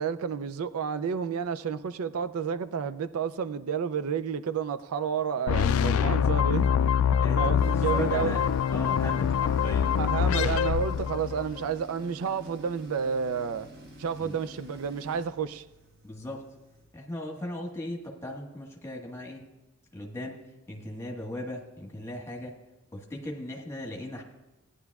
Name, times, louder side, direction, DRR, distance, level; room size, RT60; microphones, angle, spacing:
voice 1, 0.0-6.9 7.4-8.3 10.0-13.7 14.0-15.6, right 7 dB, 80° right, 0.4 m, -30 dB
sound 1, 5.5-11.6, left 8 dB, 70° left, 0.3 m, -25 dB
voice 2, 7.2-10.0 14.2-14.4 16.0-16.4 16.9-19.5 19.9-20.4 20.7-22.5 22.9-24.2, left 1 dB, 10° left, 1.4 m, -37 dB
Tools, 7.5-17.0, equal, 45° right, 1.3 m, -49 dB
17.0 x 9.9 x 2.4 m
head